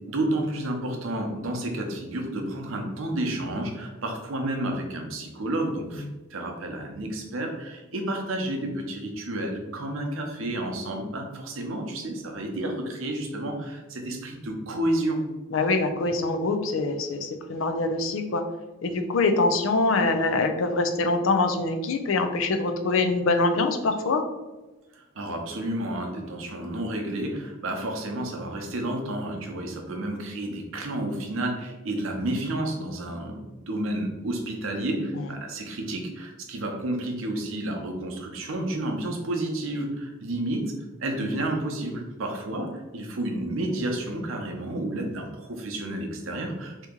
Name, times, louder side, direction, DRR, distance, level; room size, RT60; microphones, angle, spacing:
voice 1, 0.1-15.2 24.9-40.7 41.0-46.9, right 1 dB, 70° right, 2 dB, 0.7 m, -31 dB
voice 2, 15.5-18.4 18.8-24.2 35.1-35.2, left 3 dB, 70° left, 6 dB, 0.4 m, -24 dB
2.9 x 2.8 x 3.6 m, 1.1 s
head